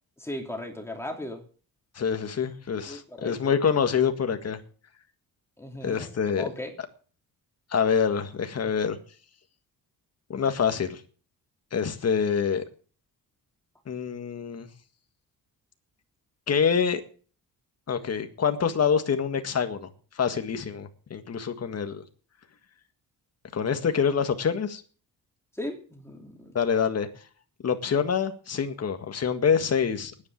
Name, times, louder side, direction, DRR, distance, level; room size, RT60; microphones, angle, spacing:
voice 1, 0.2-1.4 2.9-3.6 5.6-6.7 23.8-23.9 25.5-26.6, left 1 dB, 5° left, 3 dB, 3.0 m, -37 dB
voice 2, 2.0-4.6 5.8-6.4 7.7-9.0 10.3-11.0 11.7-12.6 13.9-14.7 16.5-17.0 17.9-19.9 20.2-22.0 23.5-24.8 26.6-27.1 27.6-30.3, left 6 dB, 45° left, 8 dB, 1.8 m, -26 dB
10.5 x 9.3 x 8.9 m, 0.41 s
cardioid pair, 130°, 36 cm